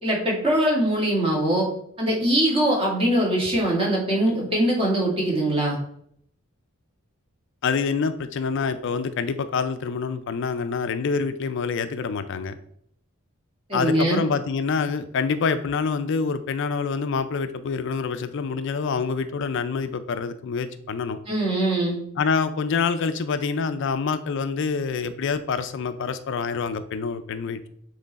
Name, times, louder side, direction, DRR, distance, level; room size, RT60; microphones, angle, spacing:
voice 1, 0.0-1.7 2.0-5.8 13.7-14.2 21.3-22.0, right 1 dB, 25° right, -3 dB, 1.9 m, -22 dB
voice 2, 7.6-12.6 13.7-21.2 22.2-27.7, left 5 dB, 60° left, 11 dB, 0.4 m, -26 dB
7.5 x 3.2 x 4.0 m, 0.67 s
head